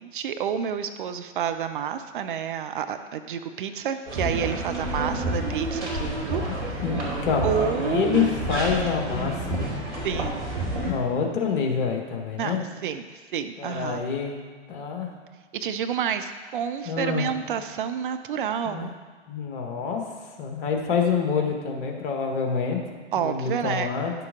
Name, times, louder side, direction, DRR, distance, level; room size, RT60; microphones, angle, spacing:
voice 1, 0.0-6.4 7.4-8.1 10.0-10.5 10.8-11.0 12.4-12.6 12.8-14.0 15.5-18.9 23.1-23.9, right 8 dB, 45° right, 9 dB, 0.5 m, -29 dB
sound 1, 4.1-10.9, right 1 dB, 70° right, 2.7 m, -29 dB
voice 2, 6.5-9.6 10.8-12.6 13.6-14.4 14.7-15.1 16.9-17.3 18.7-18.9 19.3-20.0 20.4-22.8 23.2-24.1, left 6 dB, 50° left, 2 dB, 1.5 m, -27 dB
10.5 x 6.7 x 3.8 m, 1.5 s
figure-of-eight pair, 105°, 36 cm